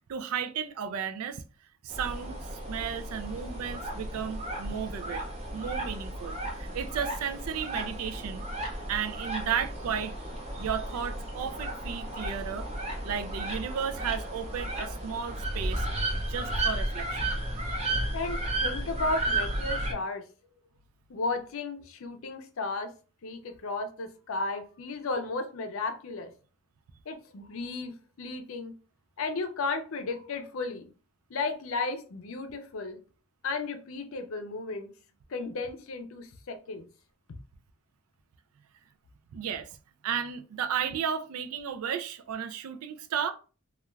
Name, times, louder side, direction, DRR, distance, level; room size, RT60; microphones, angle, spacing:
voice 1, 0.1-1.4 1.8-5.2 5.5-8.4 8.9-10.1 10.6-12.7 13.0-15.9 16.2-17.3 17.7-17.8 39.3-39.7 40.0-43.3, right 7 dB, 80° right, 0.3 m, -34 dB
sound 1, 1.9-19.9, right 1 dB, 30° right, 0.6 m, -33 dB
voice 2, 18.1-20.2 21.1-22.9 23.2-26.3 27.1-28.7 29.2-30.9 31.3-33.0 33.4-34.9 35.3-36.8, left 3 dB, 65° left, 0.5 m, -34 dB
2.3 x 2.2 x 3.0 m
head